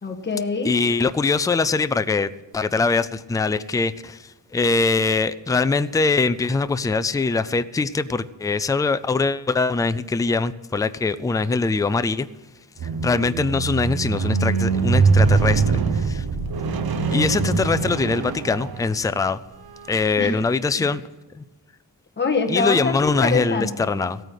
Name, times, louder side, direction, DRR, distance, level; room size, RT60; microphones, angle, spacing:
voice 1, 0.0-0.7 16.6-17.5 20.2-20.4 20.7-20.9 22.2-23.9, left 4 dB, 25° left, 3 dB, 1.4 m, -26 dB
voice 2, 0.6-12.3 13.0-16.2 17.1-19.4 19.9-21.0 21.3-21.4 22.5-24.2, left 4 dB, 10° left, 13 dB, 0.4 m, -22 dB
Squeak, 12.8-19.1 19.9-20.0, right 4 dB, 55° right, 1.1 m, -22 dB
16.5 x 9.1 x 6.4 m, 1.2 s
wide cardioid pair, 155°, 43 cm